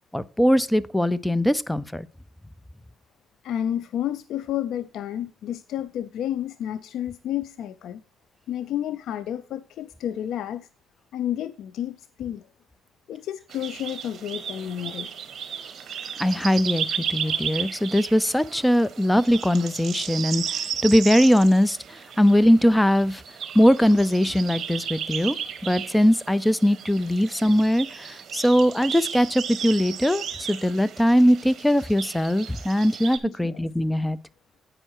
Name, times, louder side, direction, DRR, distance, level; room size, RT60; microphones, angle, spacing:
voice 1, 0.1-2.1 16.2-23.2 23.5-25.4 25.6-34.2, equal, 5° left, 0.5 m, -21 dB
voice 2, 3.4-8.0 8.5-10.7 11.1-12.5 13.1-15.1 33.2-33.6, left 11 dB, 80° left, 0.4 m, -31 dB
sound 1, 13.5-33.2, right 8 dB, 60° right, 1.0 m, -34 dB
8.8 x 5.5 x 4.6 m
cardioid pair, 90°, 0 cm